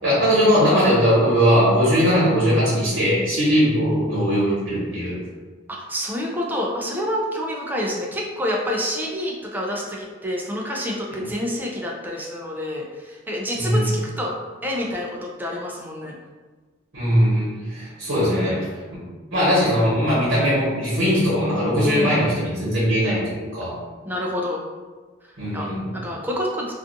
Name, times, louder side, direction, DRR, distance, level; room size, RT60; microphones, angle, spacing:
voice 1, 0.0-5.2 11.2-11.3 13.5-13.8 16.9-18.7 19.3-23.8 25.4-25.9, equal, 65° right, -9 dB, 1.0 m, -20 dB
voice 2, 5.7-14.3 14.6-16.2 21.8-22.3 24.0-24.6 25.5-25.7 25.9-26.7, equal, 10° right, -2 dB, 0.3 m, -28 dB
2.5 x 2.3 x 2.5 m, 1.4 s
head